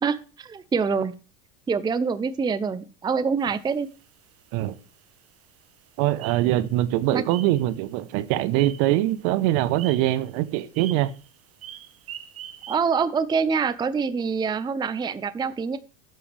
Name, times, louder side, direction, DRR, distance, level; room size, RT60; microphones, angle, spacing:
voice 1, 0.0-1.1 1.7-3.9 7.1-7.2 12.7-15.8, right 5 dB, 10° right, 0.6 m, -25 dB
sound 1, 3.4-12.8, right 10 dB, 40° right, 1.5 m, -45 dB
voice 2, 6.0-11.1, right 15 dB, 55° right, 1.0 m, -23 dB
12.5 x 7.9 x 3.4 m
hypercardioid pair, 95°, 38 cm